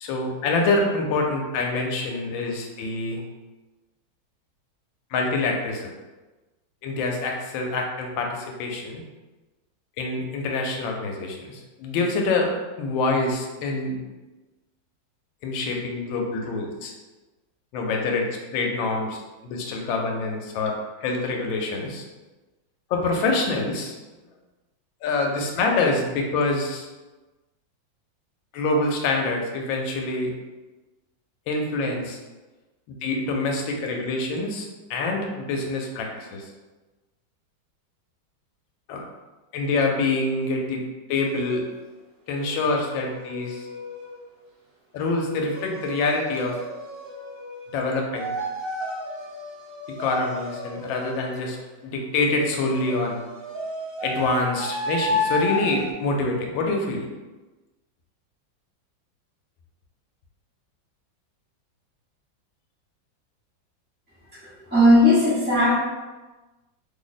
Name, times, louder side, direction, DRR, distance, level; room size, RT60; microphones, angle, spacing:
voice 1, 0.0-3.2 5.1-5.9 6.8-9.0 10.0-12.5 12.8-14.0 15.4-16.9 17.7-19.2 19.4-20.7 21.0-22.0 22.9-24.0 25.0-26.9 28.5-30.3 31.5-32.2 32.9-36.5 38.9-39.0 39.5-40.8 41.1-41.6 42.3-43.7 44.9-46.6 47.7-48.3 50.0-51.6 51.8-53.2 54.0-57.1, left 3 dB, 85° left, 1 dB, 1.3 m, -26 dB
sound 1, 41.1-41.6 42.3-44.2 45.0-47.9 48.2-51.5 52.3-55.9, left 1 dB, 60° right, 1.3 m, -32 dB
voice 2, 64.3-65.7, left 1 dB, 10° right, -12 dB, 0.5 m, -18 dB
3.2 x 2.0 x 3.9 m, 1.2 s
omnidirectional pair, 2.1 m